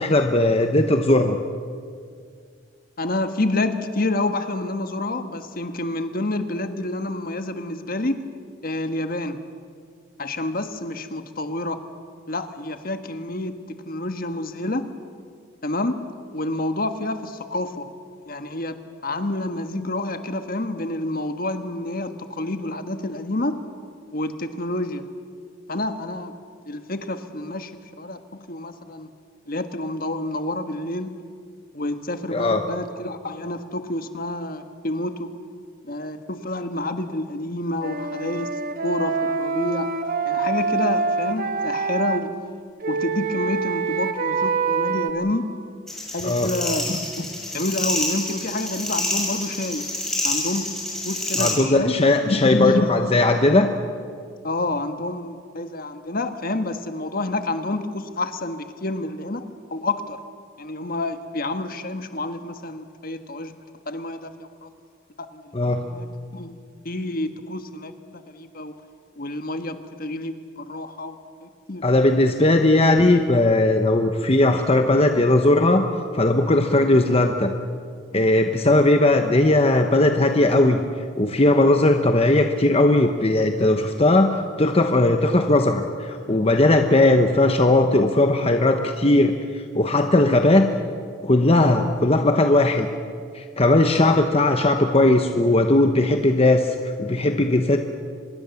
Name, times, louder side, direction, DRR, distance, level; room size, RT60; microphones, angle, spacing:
voice 1, 0.0-1.4 32.3-32.6 46.2-46.5 51.4-53.7 65.5-65.8 71.8-75.8 76.1-77.5 78.1-80.8 81.2-90.7 91.2-92.9 93.3-97.8, left 2 dB, 30° left, 5 dB, 1.0 m, -18 dB
voice 2, 3.0-8.3 8.6-9.4 10.2-11.8 12.3-14.9 15.6-16.0 16.3-17.9 18.3-23.6 24.1-25.1 25.7-26.3 26.7-27.7 28.0-29.1 29.5-31.1 31.7-35.3 35.8-39.9 40.3-42.3 42.9-45.5 46.1-47.2 47.5-49.9 50.2-50.7 51.0-51.9 52.2-52.9 54.2-60.2 60.6-63.6 63.9-64.7 65.3-65.5 65.8-66.6 66.8-68.7 69.2-71.8 94.0-94.2, left 2 dB, 50° left, 8 dB, 1.5 m, -28 dB
Wind instrument woodwind instrument, 37.8-42.2 42.8-45.1, right 4 dB, 50° right, 1.7 m, -25 dB
sound 1, 45.9-51.5, left 1 dB, 5° left, 6.2 m, -27 dB
25.0 x 21.5 x 7.1 m, 2.1 s
head